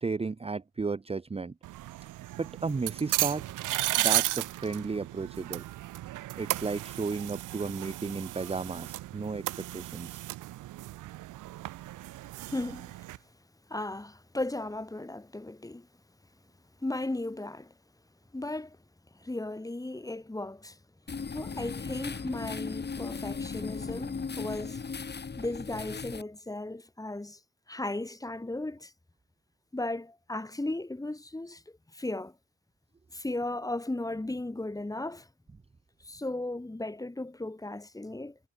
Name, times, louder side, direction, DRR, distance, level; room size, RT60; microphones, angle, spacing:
voice 1, 0.0-1.5 2.4-3.5 4.0-5.6 6.4-9.4 9.7-10.2, right 4 dB, 20° right, 1.0 m, -33 dB
sound 1, 1.6-13.2, right 16 dB, 90° right, 2.4 m, -34 dB
voice 2, 12.4-13.0 13.7-15.9 16.8-17.7 18.3-18.8 19.1-20.8 21.3-24.8 25.4-27.4 27.7-28.9 29.7-31.6 31.9-32.3 33.1-35.3 36.0-38.4, left 2 dB, 10° left, 3.2 m, -36 dB
sound 2, 21.1-26.2, left 5 dB, 35° left, 4.7 m, -37 dB
cardioid pair, 90°, 30 cm